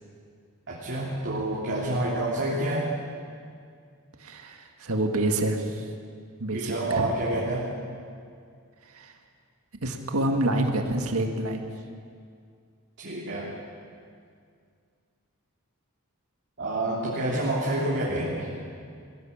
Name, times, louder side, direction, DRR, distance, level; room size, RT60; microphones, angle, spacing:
voice 1, 0.7-2.9 6.5-7.7 13.0-13.5 16.6-18.5, right 1 dB, 55° right, -6 dB, 3.4 m, -28 dB
voice 2, 4.2-5.9 6.4-7.1 8.8-9.1 9.8-11.7, right 1 dB, 75° right, 4 dB, 1.9 m, -27 dB
21.5 x 15.5 x 8.7 m, 2.2 s
head